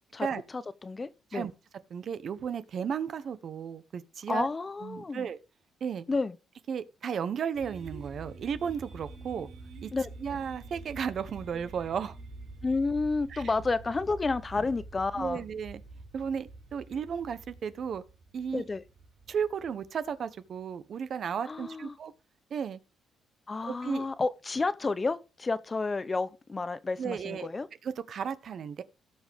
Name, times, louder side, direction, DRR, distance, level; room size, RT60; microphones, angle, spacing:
voice 1, 0.5-1.5 4.3-5.3 6.1-6.3 9.9-10.1 12.6-15.4 18.5-18.8 21.5-22.0 23.5-27.7, left 3 dB, 30° left, 0.7 m, -31 dB
voice 2, 1.9-4.5 4.8-5.4 5.8-6.0 6.7-9.5 9.8-9.9 10.2-12.2 13.3-13.5 15.1-15.8 16.1-18.0 18.3-18.7 19.3-22.1 22.5-22.8 23.6-24.1 27.0-27.5 27.8-28.8, right 7 dB, 60° right, 1.0 m, -34 dB
sound 1, 7.5-20.4, right 3 dB, 75° right, 4.0 m, -47 dB
17.0 x 6.2 x 3.6 m
cardioid pair, 90°, 0 cm